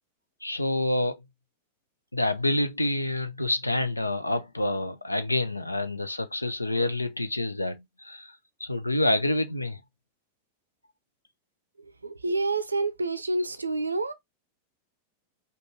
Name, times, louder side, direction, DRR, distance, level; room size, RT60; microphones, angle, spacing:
voice 1, 0.4-1.2 2.1-8.3 8.6-9.8, left 1 dB, 85° left, 0.5 m, -27 dB
voice 2, 11.8-14.1, right 3 dB, 80° right, 0.5 m, -28 dB
5.1 x 2.3 x 2.9 m
figure-of-eight pair, 90°, 0 cm